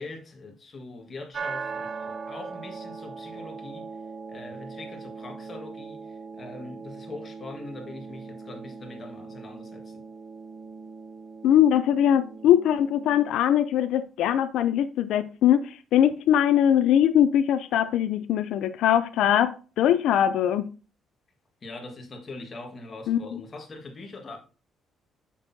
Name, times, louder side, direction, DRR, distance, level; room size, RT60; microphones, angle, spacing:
voice 1, 0.0-3.9 4.3-10.0 21.6-24.4, left 2 dB, 30° left, 1.6 m, -42 dB
sound 1, 1.3-13.3, right 5 dB, 35° right, 0.5 m, -40 dB
voice 2, 11.4-20.7 23.1-23.4, left 10 dB, 85° left, 0.4 m, -21 dB
8.0 x 6.1 x 2.7 m
cardioid pair, 150°, 0 cm